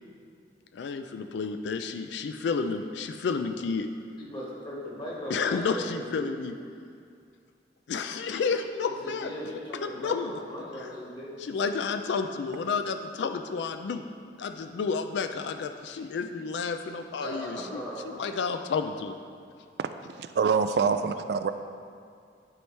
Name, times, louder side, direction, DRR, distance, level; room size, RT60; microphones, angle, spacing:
voice 1, 0.7-3.9 5.3-6.5 7.9-9.3 9.8-10.3 11.4-14.0 14.4-17.8 18.1-19.2, left 5 dB, 85° left, 8 dB, 0.3 m, -31 dB
voice 2, 4.2-6.3 8.9-11.5 17.2-18.1, equal, 25° left, -5 dB, 1.5 m, -38 dB
voice 3, 20.2-21.5, right 5 dB, 65° right, 9 dB, 0.3 m, -25 dB
11.0 x 4.7 x 3.3 m, 2.3 s
head